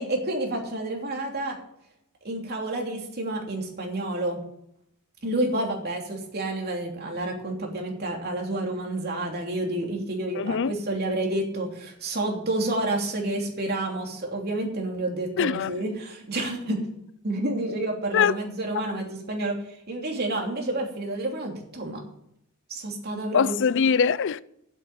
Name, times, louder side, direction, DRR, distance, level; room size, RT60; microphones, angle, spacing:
voice 1, 0.0-1.6 2.2-4.4 5.2-16.9 17.2-22.0 22.7-23.5, right 2 dB, 45° right, 3.0 m, -29 dB
voice 2, 10.4-10.7 15.4-15.7 18.1-18.3 18.8-18.9 23.3-24.4, left 6 dB, 55° left, 0.4 m, -22 dB
8.3 x 8.3 x 8.8 m
head